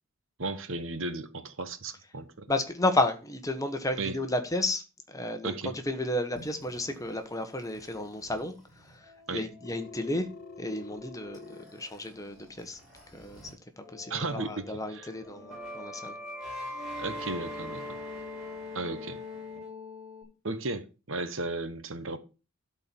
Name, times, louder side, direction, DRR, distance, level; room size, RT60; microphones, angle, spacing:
voice 1, 0.4-2.5 4.0-4.2 5.4-5.7 9.3-9.4 14.1-15.1 17.0-18.0 18.7-19.2 20.4-22.2, right 3 dB, 60° right, 1.2 m, -35 dB
voice 2, 2.5-10.3 10.6-12.8 13.1-16.1, left 2 dB, 15° left, 1.2 m, -32 dB
sound 1, 6.3-13.5 13.8-20.2, left 2 dB, ahead, 6.4 m, -43 dB
Telephone, 9.6-11.6, left 4 dB, 40° left, 0.5 m, -46 dB
12.5 x 4.5 x 7.1 m
head